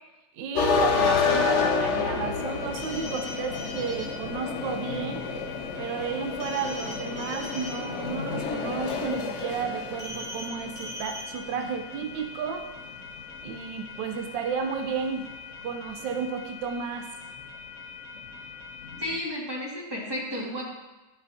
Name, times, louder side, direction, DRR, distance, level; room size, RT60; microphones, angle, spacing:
voice 1, 0.3-5.3 5.8-12.7 13.4-15.3 15.6-17.1, right 6 dB, 75° right, 5 dB, 1.2 m, -32 dB
sound 1, 0.5-19.2, left 5 dB, 85° left, 0.6 m, -31 dB
sound 2, 2.8-4.1 6.4-7.7 10.0-10.5 10.8-11.3, left 2 dB, 30° left, 1.3 m, -40 dB
voice 2, 19.0-20.6, left 1 dB, 15° right, -6 dB, 1.6 m, -32 dB
10.5 x 6.0 x 2.7 m, 1.1 s
omnidirectional pair, 2.2 m